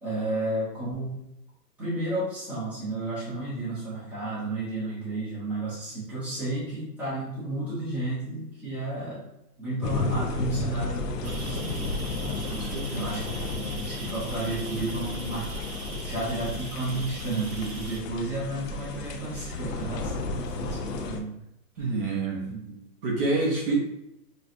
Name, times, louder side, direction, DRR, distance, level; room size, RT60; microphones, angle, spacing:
voice 1, 0.0-1.2 1.8-9.2 9.6-12.0 12.9-15.5 16.0-21.4 21.7-21.9 22.5-22.8, right 2 dB, 5° right, -11 dB, 0.8 m, -32 dB
sound 1, 9.8-21.2, left 3 dB, 70° left, 0.8 m, -33 dB
sound 2, 11.2-18.0, right 3 dB, 55° right, 1.0 m, -42 dB
voice 2, 12.4-13.2 21.8-22.4 23.0-23.7, right 3 dB, 35° right, -2 dB, 0.8 m, -28 dB
6.3 x 2.3 x 2.5 m, 0.84 s
hypercardioid pair, 155°, 50 cm